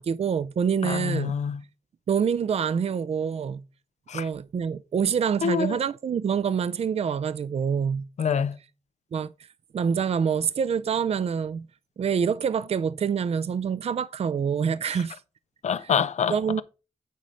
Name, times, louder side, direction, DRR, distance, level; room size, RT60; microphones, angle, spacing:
voice 1, 0.0-1.3 2.1-3.6 4.1-8.0 9.1-9.3 9.7-11.6 12.0-15.2 16.3-16.6, right 7 dB, 60° right, 0.4 m, -26 dB
voice 2, 0.8-1.6 4.1-4.3 5.4-5.8 8.2-8.5 15.6-16.6, left 7 dB, 80° left, 0.6 m, -26 dB
9.3 x 4.1 x 5.1 m
cardioid pair, 70°, 12 cm